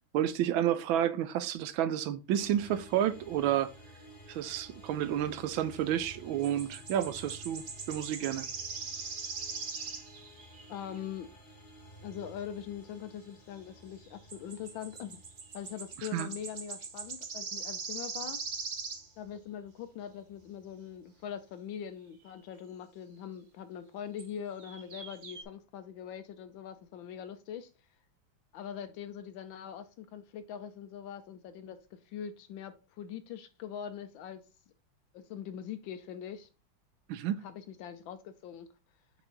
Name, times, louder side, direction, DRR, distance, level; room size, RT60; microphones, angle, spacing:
voice 1, 0.1-3.7 4.3-8.5 16.0-16.3 37.1-37.4, right 11 dB, 80° right, 1.4 m, -30 dB
sound 1, 2.4-21.5, right 1 dB, 25° left, 1.8 m, -54 dB
sound 2, 6.4-11.0 14.3-19.1 22.3-22.4 24.2-24.3 24.6-25.4, right 5 dB, 45° right, 0.8 m, -41 dB
voice 2, 10.7-11.3 12.0-15.2 15.5-18.4 19.2-27.7 28.5-34.4 35.1-36.5 37.4-38.7, left 9 dB, 80° left, 1.4 m, -42 dB
6.2 x 4.8 x 3.9 m
omnidirectional pair, 2.1 m